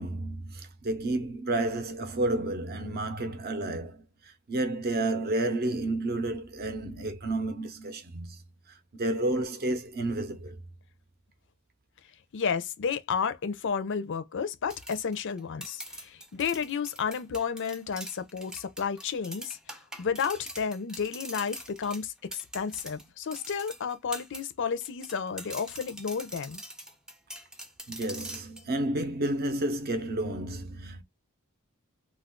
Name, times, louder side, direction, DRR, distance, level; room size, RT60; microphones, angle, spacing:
voice 1, 0.0-8.4 8.9-10.6 27.9-31.0, right 1 dB, 45° right, 0.6 m, -31 dB
voice 2, 12.3-19.6 20.0-26.6, left 6 dB, 55° left, 0.5 m, -32 dB
sound 1, 14.7-24.5 24.8-28.6, equal, 5° right, 0.3 m, -43 dB
2.4 x 2.3 x 3.5 m
head